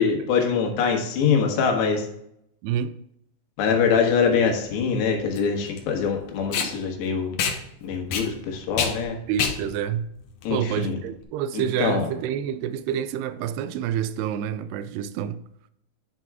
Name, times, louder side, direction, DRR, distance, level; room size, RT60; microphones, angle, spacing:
voice 1, 0.0-2.1 3.6-7.3 7.8-9.2 10.4-11.0 11.6-12.1, left 6 dB, 85° left, 3.7 m, -23 dB
voice 2, 2.6-3.0 9.3-10.1 10.5-15.4, right 9 dB, 80° right, 2.5 m, -28 dB
Packing tape duct tape, 3.8-11.2, left 6 dB, 70° left, 2.1 m, -30 dB
9.9 x 6.1 x 3.6 m
omnidirectional pair, 4.9 m